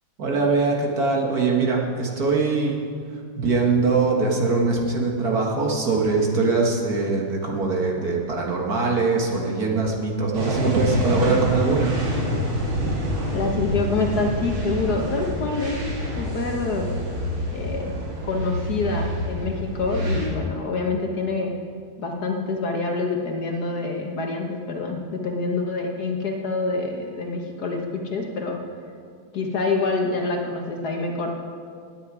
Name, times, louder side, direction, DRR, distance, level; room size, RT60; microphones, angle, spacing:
voice 1, 0.2-2.8 3.4-12.0, right 4 dB, 50° right, -1 dB, 1.9 m, -22 dB
sound 1, 10.3-20.3, equal, 70° right, 2.9 m, -27 dB
voice 2, 13.3-15.8 16.1-16.9 17.5-17.9 18.2-21.5 22.0-28.6 29.3-31.3, left 3 dB, 55° left, 2 dB, 1.5 m, -26 dB
17.5 x 9.5 x 4.8 m, 2.2 s
omnidirectional pair, 2.2 m